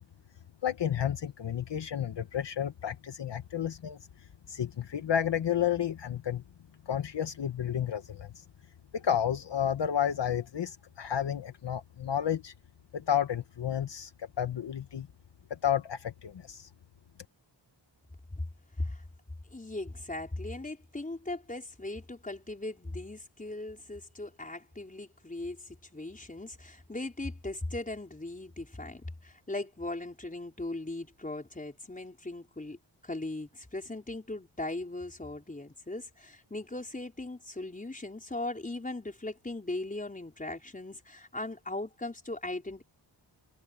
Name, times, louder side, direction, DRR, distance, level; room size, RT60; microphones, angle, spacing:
voice 1, 0.6-4.0 4.5-6.4 6.9-8.4 8.9-12.5 12.9-15.1 15.5-16.7, left 9 dB, 65° left, 1.3 m, -31 dB
voice 2, 19.5-32.8 33.0-42.8, left 2 dB, 15° left, 4.7 m, -38 dB
wide cardioid pair, 130°, 46 cm